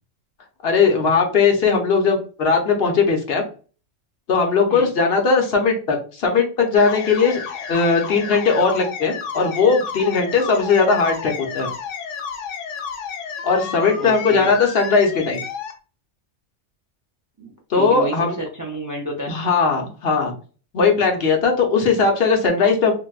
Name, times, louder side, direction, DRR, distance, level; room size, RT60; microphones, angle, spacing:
voice 1, 0.6-3.4 4.3-7.4 7.7-11.7 13.4-15.4 17.7-18.4 19.3-20.3 20.7-22.9, left 4 dB, 60° left, 2 dB, 0.9 m, -18 dB
sound 1, 6.8-15.7, left 6 dB, 85° left, 1.0 m, -32 dB
voice 2, 14.0-14.5 17.4-19.4, equal, 30° right, -1 dB, 0.3 m, -30 dB
3.3 x 2.5 x 2.3 m, 0.38 s
omnidirectional pair, 1.2 m